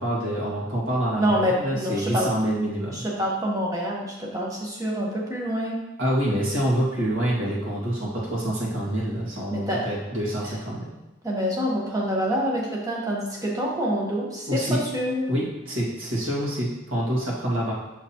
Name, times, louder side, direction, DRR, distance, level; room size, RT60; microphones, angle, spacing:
voice 1, 0.0-3.0 6.0-10.9 14.5-14.8 15.3-17.7, right 1 dB, 90° right, -6 dB, 2.1 m, -26 dB
voice 2, 1.2-2.3 2.9-5.8 9.5-9.9 11.2-15.3, equal, 15° right, -4 dB, 1.2 m, -26 dB
6.7 x 5.8 x 2.9 m, 1.0 s
head